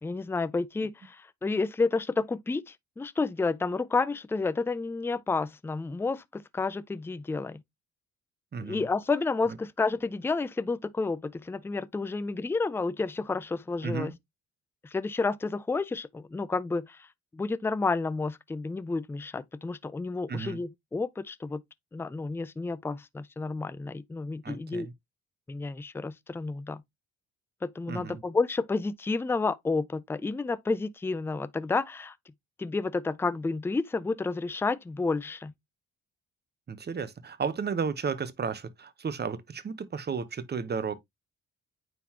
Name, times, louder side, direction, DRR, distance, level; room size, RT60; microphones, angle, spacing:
voice 1, 0.0-7.6 8.6-14.1 14.8-17.0 17.3-21.6 21.9-24.9 25.5-26.8 27.6-32.1 32.6-35.5, left 3 dB, 10° left, 0.4 m, -30 dB
voice 2, 8.5-8.9 9.5-9.6 13.8-14.1 20.3-20.6 24.4-24.9 27.9-28.2 36.7-40.9, right 5 dB, 35° right, 1.0 m, -33 dB
9.2 x 3.8 x 2.9 m
cardioid pair, 90°, 30 cm